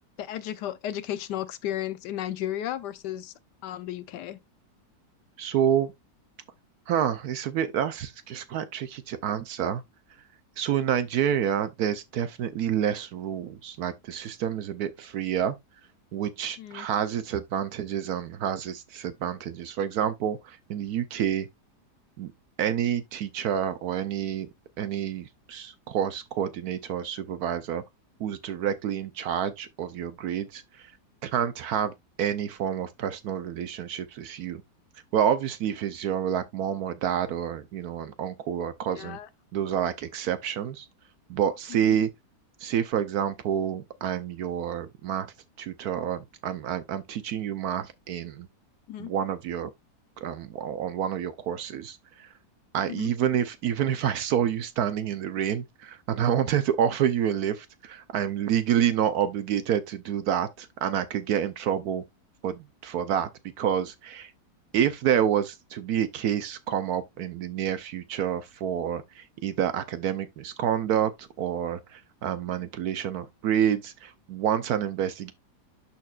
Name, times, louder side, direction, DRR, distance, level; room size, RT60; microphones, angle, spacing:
voice 1, 0.2-3.3 3.6-4.4 16.6-16.9 38.9-39.3 41.7-42.0 48.9-49.1 52.9-53.1, left 12 dB, 85° left, 1.3 m, -34 dB
voice 2, 5.4-5.9 6.9-9.8 10.6-15.5 16.1-21.5 22.2-22.3 22.6-24.5 24.8-27.8 28.2-30.9 31.2-31.9 32.2-34.6 35.1-39.2 39.5-40.9 41.3-42.1 42.6-48.5 49.0-49.7 50.2-52.3 52.7-62.0 62.4-63.3 63.6-64.3 64.7-75.3, right 9 dB, 70° right, 1.1 m, -28 dB
12.0 x 4.3 x 2.3 m
omnidirectional pair, 1.8 m